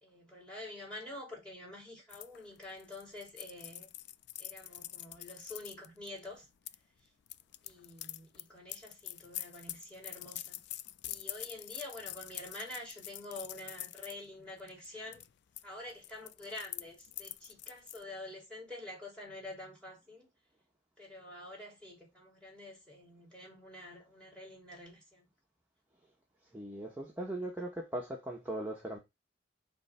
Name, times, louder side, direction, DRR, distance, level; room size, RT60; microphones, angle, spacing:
voice 1, 0.0-3.9 4.4-6.5 7.6-10.6 11.0-15.2 15.6-20.3 21.0-25.3, left 1 dB, 5° left, 3.4 m, -47 dB
sound 1, 2.1-6.8 7.3-14.1 14.6-14.9 15.1-15.6 15.9-18.0, left 15 dB, 65° left, 0.4 m, -45 dB
voice 2, 26.5-29.0, right 1 dB, 10° right, 1.4 m, -39 dB
6.6 x 3.5 x 5.8 m
head